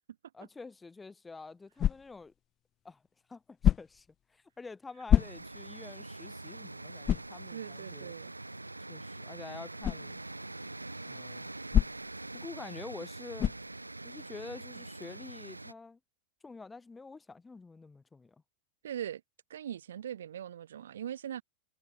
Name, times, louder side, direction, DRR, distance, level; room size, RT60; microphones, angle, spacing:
voice 1, 0.3-2.3 2.8-3.0 3.3-8.1 8.9-10.2 11.1-11.5 12.3-13.5 14.0-16.0 16.4-18.4, left 4 dB, 10° left, 1.7 m, -48 dB
sound 1, 1.8-2.3 3.6-4.1 5.1-5.7 6.2-6.3 7.0-7.4 9.8-10.1 11.7-12.2 13.4-13.7, left 10 dB, 30° left, 0.6 m, -27 dB
sound 2, 5.2-15.7, right 2 dB, 85° right, 0.6 m, -44 dB
voice 2, 7.5-8.3 14.8-14.9 18.8-19.2 19.5-21.4, right 10 dB, 65° right, 2.9 m, -40 dB
figure-of-eight pair, 90°, 0 cm